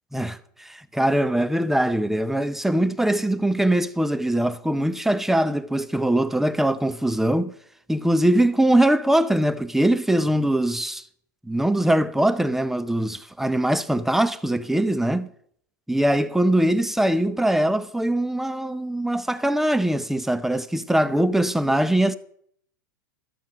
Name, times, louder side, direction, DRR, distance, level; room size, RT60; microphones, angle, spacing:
voice 1, 0.1-7.5 7.9-11.0 11.4-15.3 15.9-22.1, right 1 dB, 5° right, 0.6 m, -22 dB
12.5 x 7.3 x 5.1 m
hypercardioid pair, 100°, 11 cm